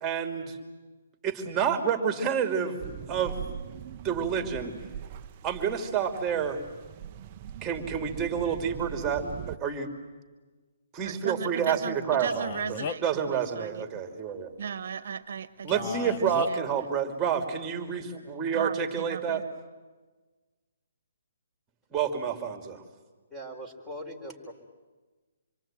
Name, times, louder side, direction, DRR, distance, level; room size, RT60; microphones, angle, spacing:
voice 1, 0.0-0.6 1.2-2.8 3.1-3.4 4.0-4.7 5.4-6.6 7.6-9.9 10.9-14.5 15.6-19.4 21.9-22.8, right 7 dB, 15° right, 6 dB, 2.9 m, -29 dB
sound 1, 2.8-9.6, right 9 dB, 30° right, 0.8 m, -41 dB
voice 2, 11.0-14.0 14.6-16.9 18.5-19.4, right 7 dB, 60° right, 11 dB, 1.3 m, -37 dB
Male speech man speaking, 12.3-13.2 15.7-16.5, left 8 dB, 35° left, 1.0 m, -36 dB
voice 3, 23.3-24.5, equal, 5° left, 3 dB, 4.1 m, -40 dB
27.0 x 23.5 x 9.1 m, 1.3 s
hypercardioid pair, 155°, 0 cm